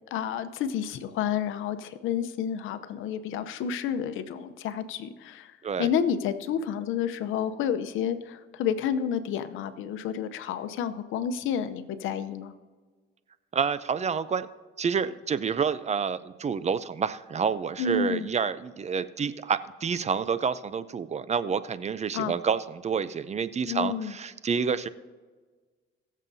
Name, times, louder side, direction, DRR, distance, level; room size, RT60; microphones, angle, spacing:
voice 1, 0.1-5.5 5.8-12.5 17.8-18.3 22.1-22.4 23.7-24.1, left 8 dB, 90° left, 11 dB, 0.7 m, -30 dB
voice 2, 13.5-14.5 14.8-24.9, right 6 dB, 35° right, 15 dB, 0.5 m, -28 dB
21.0 x 7.3 x 2.7 m, 1.4 s
cardioid pair, 90°, 20 cm